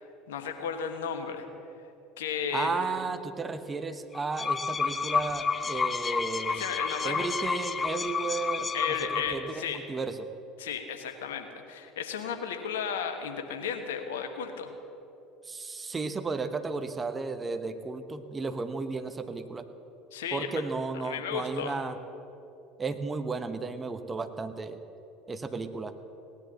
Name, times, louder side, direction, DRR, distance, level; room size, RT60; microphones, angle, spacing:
voice 1, 0.3-1.4 2.2-2.9 6.5-7.3 8.7-9.8 10.6-14.7 20.1-20.6 21.0-21.7, left 7 dB, 75° left, 6 dB, 1.4 m, -34 dB
voice 2, 2.5-6.6 7.0-8.7 9.1-10.2 15.4-19.7 20.3-21.9 22.8-24.8 25.3-25.9, right 4 dB, 25° right, 9 dB, 1.2 m, -34 dB
sound 1, 4.1-9.5, left 5 dB, 25° left, 0.7 m, -30 dB
18.5 x 10.5 x 7.0 m, 2.8 s
figure-of-eight pair, 70°, 0 cm